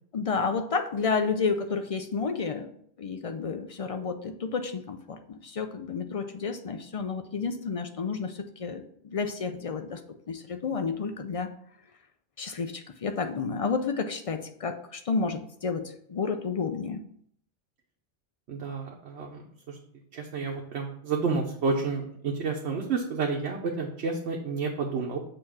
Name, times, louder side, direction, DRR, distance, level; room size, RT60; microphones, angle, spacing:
voice 1, 0.1-2.7 3.0-10.0 10.3-11.5 12.4-17.1, left 5 dB, 55° left, 7 dB, 0.4 m, -31 dB
voice 2, 18.5-19.8 20.1-25.2, right 4 dB, 80° right, 0 dB, 1.1 m, -30 dB
6.7 x 2.9 x 5.8 m, 0.65 s
omnidirectional pair, 1.1 m